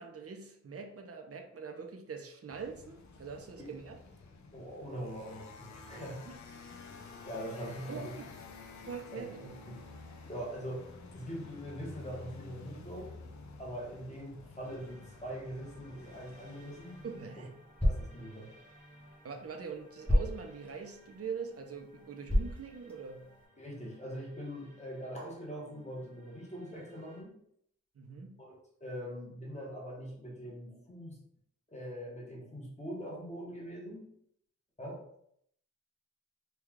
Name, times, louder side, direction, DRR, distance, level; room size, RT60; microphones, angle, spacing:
voice 1, 0.0-4.0 6.3-6.4 7.9-8.3 8.9-9.5 17.0-17.5 19.2-23.3 28.0-28.4, right 5 dB, 50° right, 4 dB, 0.5 m, -43 dB
sound 1, 2.5-17.3, left 4 dB, 70° left, 0.5 m, -51 dB
voice 2, 4.5-6.2 7.2-8.2 9.1-9.3 9.6-9.8 10.3-10.9 11.1-13.1 13.6-17.0 17.8-18.6 23.6-27.4 28.4-31.2 31.7-34.1 34.8-35.2, equal, 25° left, -4 dB, 1.0 m, -42 dB
sound 2, 14.6-27.2, right 1 dB, 25° right, 0.9 m, -60 dB
sound 3, 16.5-23.5, left 1 dB, 5° left, 0.7 m, -35 dB
3.2 x 2.3 x 3.5 m, 0.69 s
wide cardioid pair, 110°, 30 cm